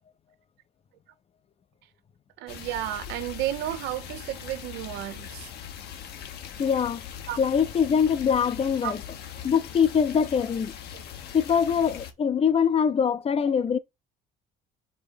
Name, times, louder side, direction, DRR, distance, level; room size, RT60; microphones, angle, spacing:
voice 1, 2.4-5.5 7.3-7.4 8.8-9.0 10.9-11.0, right 13 dB, 90° right, 0.8 m, -32 dB
sound 1, 2.5-12.1, left 9 dB, 70° left, 1.2 m, -41 dB
voice 2, 6.6-7.0 7.4-9.0 9.4-10.7 11.3-13.8, left 7 dB, 35° left, 0.7 m, -23 dB
5.1 x 3.8 x 5.1 m
cardioid pair, 110°, 17 cm